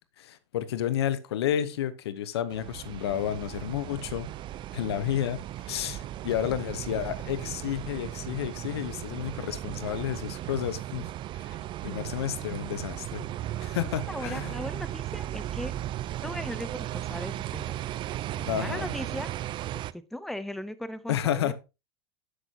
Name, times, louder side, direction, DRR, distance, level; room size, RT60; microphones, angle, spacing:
voice 1, 0.2-4.3 4.7-11.1 11.4-13.2 13.6-14.5 18.5-18.9 21.1-21.5, left 10 dB, 90° left, 0.9 m, -31 dB
sound 1, 2.5-19.9, right 13 dB, 40° right, 0.4 m, -36 dB
voice 2, 14.1-15.7 16.2-17.8 18.4-19.3 19.7-21.5, left 1 dB, ahead, 0.7 m, -38 dB
8.2 x 7.9 x 2.8 m
supercardioid pair, 110°, 13 cm